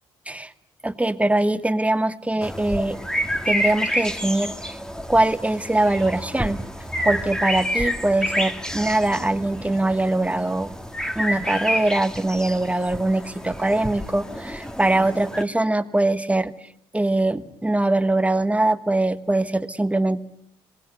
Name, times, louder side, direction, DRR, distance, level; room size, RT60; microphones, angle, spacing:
voice 1, 0.8-3.0 3.5-4.8 5.1-6.6 7.0-10.7 11.1-16.5 16.9-20.2, right 2 dB, 10° right, 12 dB, 1.3 m, -22 dB
sound 1, 2.4-15.4, equal, 5° left, 1.9 m, -29 dB
26.0 x 19.5 x 7.9 m, 0.68 s
supercardioid pair, 60°, 12 cm